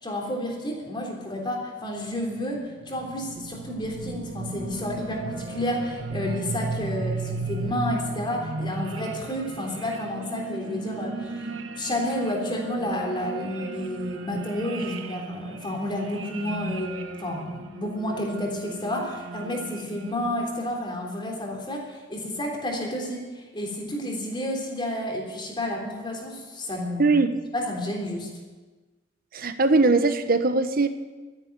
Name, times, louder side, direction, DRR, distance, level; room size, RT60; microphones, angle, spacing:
voice 1, 0.0-11.5 11.7-27.2 27.5-28.3, left 1 dB, 25° left, 0 dB, 3.4 m, -31 dB
sound 1, 2.2-20.5, right 3 dB, 75° right, 1.1 m, -35 dB
voice 2, 29.3-30.9, right 3 dB, 50° right, 10 dB, 1.1 m, -20 dB
13.0 x 11.0 x 9.8 m, 1.3 s
head